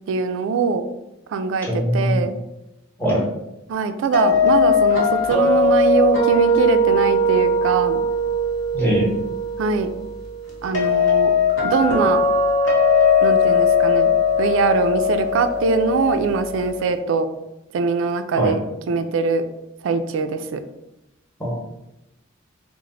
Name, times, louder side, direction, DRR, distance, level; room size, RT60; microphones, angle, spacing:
voice 1, 0.1-0.8 1.3-2.3 3.7-8.0 9.6-9.9 10.6-11.3 11.6-12.2 13.2-14.1 14.4-17.3 17.7-18.6 18.9-19.4 19.8-20.6, right 5 dB, 75° right, 9 dB, 0.3 m, -22 dB
voice 2, 1.6-2.2 3.0-3.2 8.7-9.1 18.3-18.5 21.4-21.6, equal, 10° left, -4 dB, 0.8 m, -21 dB
sound 1, 4.1-17.0, left 3 dB, 65° left, 0.9 m, -19 dB
3.1 x 2.0 x 3.7 m, 0.91 s
head